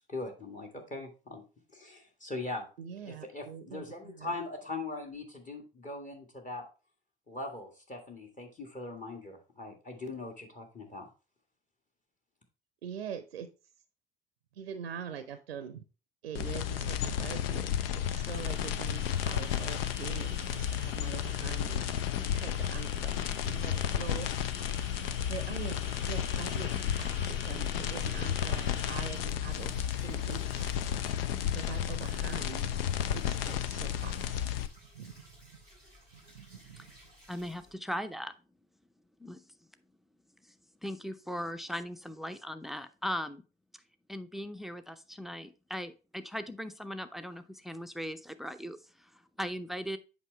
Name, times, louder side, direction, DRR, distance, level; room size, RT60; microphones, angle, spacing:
voice 1, 0.1-1.4 1.7-2.7 3.0-6.6 7.3-11.1, left 2 dB, 25° left, 2 dB, 1.7 m, -41 dB
voice 2, 2.8-4.4 12.8-13.5 14.5-15.8 16.2-17.7 18.0-21.9 22.3-24.3 25.3-25.8 26.1-26.7 27.0-30.9 31.5-32.9 33.1-34.4 34.9-35.6 36.1-36.9, right 8 dB, 80° right, 10 dB, 0.6 m, -43 dB
sound 1, 16.3-34.7, left 10 dB, 70° left, 0.6 m, -32 dB
sound 2, 17.7-31.2, left 3 dB, 40° left, 1.3 m, -47 dB
sound 3, 29.5-37.7, equal, 90° left, 3.3 m, -57 dB
voice 3, 37.3-38.3 39.2-39.4 40.8-43.4 44.1-49.1 49.4-50.0, equal, ahead, 11 dB, 0.6 m, -38 dB
8.2 x 5.4 x 3.2 m, 0.33 s
figure-of-eight pair, 55°, 30 cm